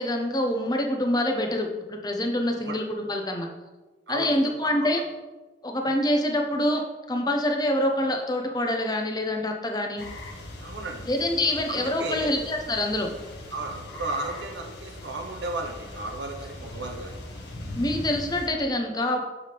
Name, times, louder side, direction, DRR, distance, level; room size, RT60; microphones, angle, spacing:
voice 1, 0.0-3.5 4.1-5.0 5.6-10.0 11.1-13.1 17.7-19.2, left 1 dB, 20° left, 3 dB, 0.8 m, -26 dB
voice 2, 4.1-4.7 10.6-11.1 11.7-12.3 13.5-17.2, right 2 dB, 75° right, 1 dB, 1.2 m, -34 dB
sound 1, 10.0-18.5, left 1 dB, 70° left, 1.3 m, -40 dB
7.1 x 6.6 x 3.5 m, 1.2 s
head